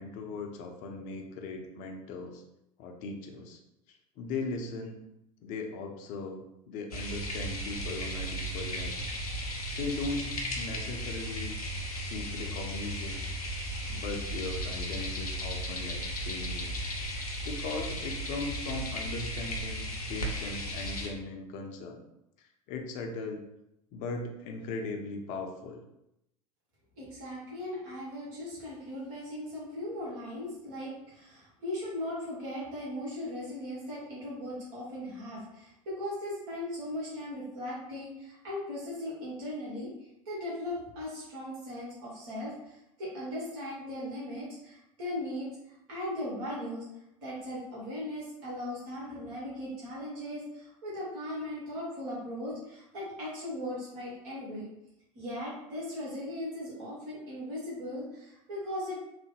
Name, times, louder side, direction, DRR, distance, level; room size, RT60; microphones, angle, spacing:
voice 1, 0.0-2.4 2.8-3.6 3.9-5.0 5.4-9.1 9.8-11.5 12.0-13.2 13.9-16.8 17.4-22.0 22.4-23.5 23.9-25.8, left 3 dB, 45° left, 3 dB, 0.6 m, -38 dB
sound 1, 6.9-21.1, equal, 85° left, 0.7 m, -35 dB
voice 2, 27.0-39.9 40.2-45.6 45.9-46.8 47.2-54.7 55.1-59.0, left 1 dB, 55° right, -6 dB, 1.3 m, -38 dB
3.2 x 2.1 x 3.3 m, 0.85 s
figure-of-eight pair, 80°, 19 cm